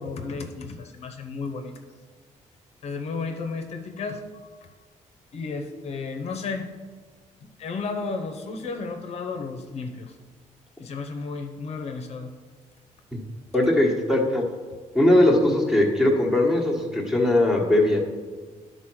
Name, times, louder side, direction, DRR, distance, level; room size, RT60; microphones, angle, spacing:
voice 1, 0.0-1.7 2.8-4.2 5.3-6.7 7.4-10.1 10.8-12.3, left 4 dB, 55° left, 5 dB, 0.8 m, -33 dB
voice 2, 13.5-14.4 14.9-18.0, left 1 dB, 5° right, 0 dB, 1.3 m, -20 dB
11.0 x 4.1 x 6.2 m, 1.4 s
cardioid pair, 155°, 13 cm